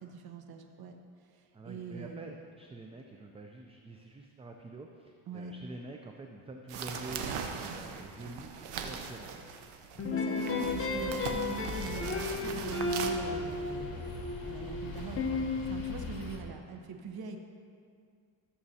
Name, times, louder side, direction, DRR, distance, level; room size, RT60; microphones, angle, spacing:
voice 1, 0.0-1.0 1.2-2.4 5.3-5.5 9.8-17.4, right 5 dB, 45° right, 4 dB, 0.9 m, -43 dB
voice 2, 1.5-9.4, right 2 dB, 15° right, 2 dB, 0.3 m, -46 dB
sound 1, 6.7-13.1, right 6 dB, 80° right, 0.9 m, -40 dB
sound 2, 10.0-15.9, left 3 dB, 25° left, 0.8 m, -34 dB
sound 3, 10.7-16.4, left 3 dB, 45° left, 1.8 m, -43 dB
14.0 x 7.1 x 2.8 m, 2.2 s
cardioid pair, 110°, 49 cm